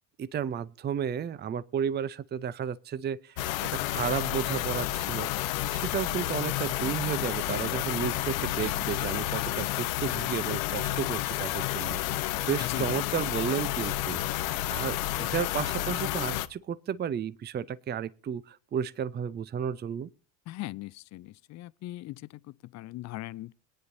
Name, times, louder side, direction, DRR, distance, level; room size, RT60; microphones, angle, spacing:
voice 1, 0.2-3.4 3.7-5.3 5.7-20.1, right 8 dB, 25° right, 0.6 m, -33 dB
sound 1, 3.4-16.5, left 15 dB, 75° left, 0.7 m, -30 dB
voice 2, 12.6-13.0 20.5-23.5, left 17 dB, 45° left, 0.5 m, -39 dB
22.0 x 9.7 x 2.6 m
hypercardioid pair, 75°, 41 cm